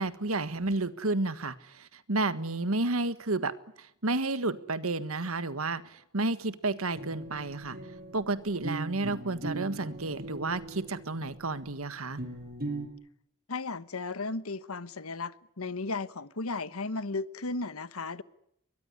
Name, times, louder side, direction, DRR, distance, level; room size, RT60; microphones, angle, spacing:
voice 1, 0.0-7.8 8.1-12.2, right 2 dB, 75° right, 1.6 m, -31 dB
sound 1, 6.9-12.9, right 2 dB, 45° right, 6.7 m, -40 dB
voice 2, 13.5-18.2, left 3 dB, 85° left, 1.2 m, -35 dB
23.5 x 21.0 x 9.9 m
head